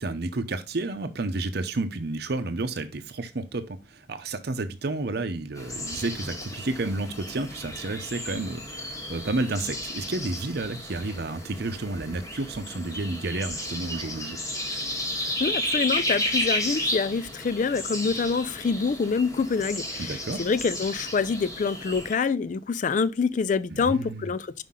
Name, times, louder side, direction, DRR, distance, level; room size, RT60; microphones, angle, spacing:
voice 1, 0.0-14.4 20.0-20.4 23.7-24.3, right 2 dB, 55° right, 0.7 m, -31 dB
sound 1, 5.6-22.1, left 1 dB, 20° left, 1.4 m, -33 dB
voice 2, 15.4-20.1 20.4-24.6, left 5 dB, 40° left, 0.3 m, -26 dB
5.7 x 5.2 x 3.7 m
head